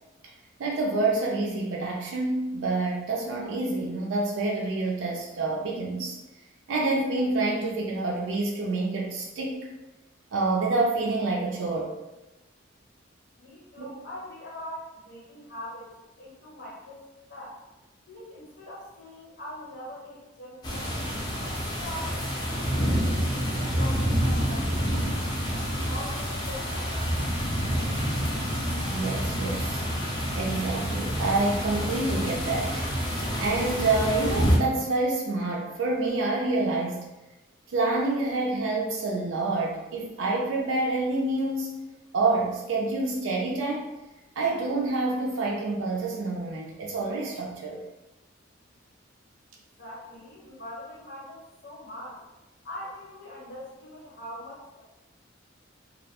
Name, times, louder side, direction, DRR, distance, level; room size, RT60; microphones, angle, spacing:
voice 1, 0.6-6.2 6.7-9.7 10.3-12.0 13.8-13.9 28.9-29.8 30.4-32.8 33.4-37.1 37.7-41.7 42.1-44.0 44.4-47.8, right 2 dB, 75° right, -2 dB, 0.4 m, -27 dB
voice 2, 13.4-15.9 16.2-17.6 18.1-23.1 23.5-24.9 25.8-27.3 49.8-52.2 52.6-54.8, left 1 dB, 65° left, -6 dB, 0.7 m, -42 dB
sound 1, 20.6-34.6, equal, 20° left, 0.5 m, -28 dB
2.3 x 2.1 x 2.8 m, 1.0 s
head